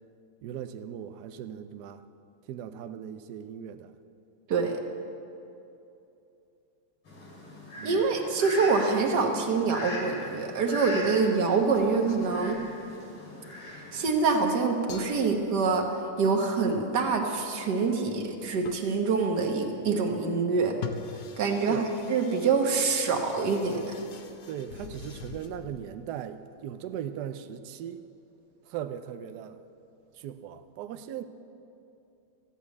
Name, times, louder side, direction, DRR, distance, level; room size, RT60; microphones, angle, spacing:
voice 1, 0.4-2.0 2.5-3.9 7.8-8.1 21.6-21.9 24.5-28.0 28.7-29.6 30.2-31.2, right 9 dB, 90° right, 10 dB, 0.8 m, -38 dB
voice 2, 4.5-4.8 7.8-12.6 13.9-15.9 16.2-20.8 21.4-21.8 22.1-24.0, right 4 dB, 55° right, 3 dB, 1.6 m, -25 dB
Fowl, 7.1-14.1, left 1 dB, 85° left, 4.1 m, -40 dB
sound 1, 11.6-13.2 13.7-13.8 14.0-14.4 14.9-16.3 18.3-18.4 18.6-19.0 20.7-25.8, left 7 dB, 60° left, 1.0 m, -44 dB
13.5 x 8.6 x 8.2 m, 2.8 s
omnidirectional pair, 2.4 m